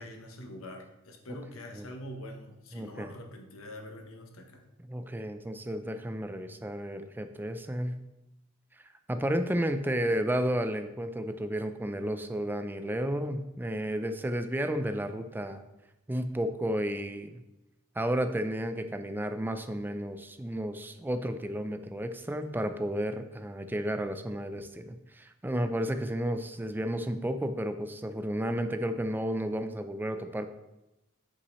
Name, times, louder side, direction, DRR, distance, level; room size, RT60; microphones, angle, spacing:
voice 1, 0.0-4.6, left 1 dB, 80° left, 4 dB, 1.0 m, -44 dB
voice 2, 2.7-3.1 4.9-7.9 9.1-15.6 16.1-17.4 18.0-30.5, equal, 10° right, 8 dB, 0.4 m, -32 dB
8.3 x 5.6 x 3.1 m, 0.94 s
head